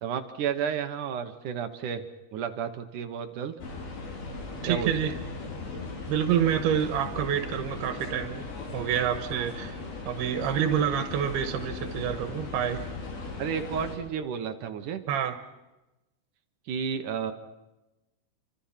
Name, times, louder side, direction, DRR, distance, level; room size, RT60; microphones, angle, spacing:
voice 1, 0.0-2.0 2.3-3.5 4.7-5.1 13.4-15.0 16.7-17.3, right 7 dB, 65° right, 8 dB, 2.4 m, -32 dB
sound 1, 3.6-14.0, left 3 dB, 70° left, 5.7 m, -38 dB
voice 2, 4.6-5.1 6.1-8.5 8.7-9.8 10.1-12.8 15.1-15.3, right 9 dB, 90° right, 7 dB, 3.2 m, -27 dB
29.0 x 25.5 x 5.8 m, 1.0 s
omnidirectional pair, 4.5 m